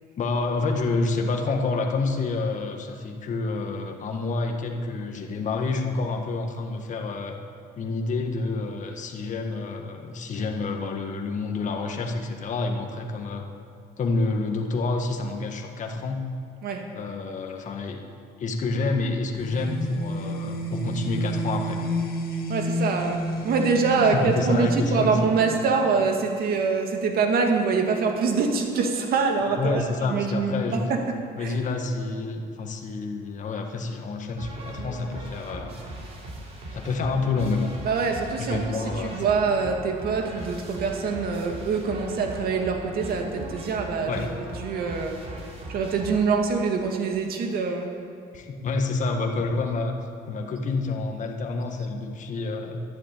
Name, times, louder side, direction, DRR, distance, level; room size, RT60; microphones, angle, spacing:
voice 1, 0.2-7.4 7.7-13.4 14.0-16.2 16.9-18.0 18.4-21.9 24.0-25.2 29.6-30.8 31.4-35.8 36.7-37.7 38.4-39.2 44.1-44.3 48.3-50.0 50.3-52.8, left 3 dB, 45° left, 3 dB, 1.6 m, -28 dB
sound 1, 19.3-26.0, right 1 dB, 65° left, 2.1 m, -31 dB
voice 2, 22.5-31.0 31.4-31.6 37.8-44.3 44.6-45.2 45.7-47.9, right 5 dB, 65° right, 3 dB, 2.2 m, -25 dB
sound 2, 34.4-46.8, right 1 dB, 35° right, 3.8 m, -39 dB
11.5 x 11.0 x 8.8 m, 2.6 s
cardioid pair, 110°, 17 cm